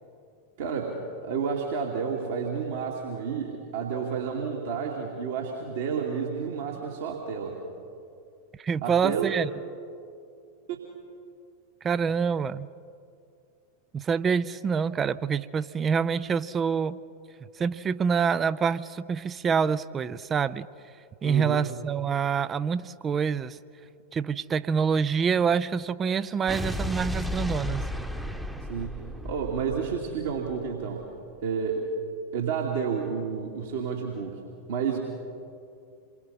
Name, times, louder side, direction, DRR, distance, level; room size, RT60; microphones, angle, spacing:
voice 1, 0.6-7.6 8.8-9.4 10.7-10.8 21.2-21.6 28.7-28.9 29.2-31.0 31.4-31.9 32.3-34.4 34.7-35.0, right 6 dB, 55° right, -1 dB, 2.5 m, -30 dB
voice 2, 8.6-9.5 11.8-12.7 13.9-17.0 17.6-20.7 21.2-23.6 24.1-27.8, right 6 dB, 20° right, 15 dB, 0.5 m, -26 dB
Explosion, 26.5-30.8, left 1 dB, 5° right, 1.2 m, -34 dB
28.0 x 23.5 x 5.6 m, 2.4 s
figure-of-eight pair, 90°, 0 cm